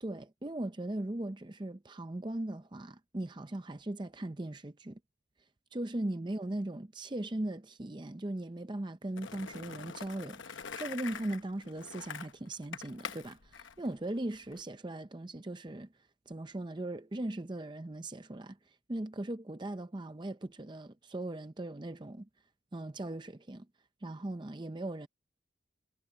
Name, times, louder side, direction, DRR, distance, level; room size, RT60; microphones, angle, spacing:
voice 1, 0.0-5.0 5.7-15.9 16.3-18.6 18.9-22.3 22.7-23.7 24.0-25.1, right 1 dB, 25° right, 0.6 m, -39 dB
Skateboard, 9.2-14.6, left 6 dB, 80° left, 1.0 m, -45 dB
head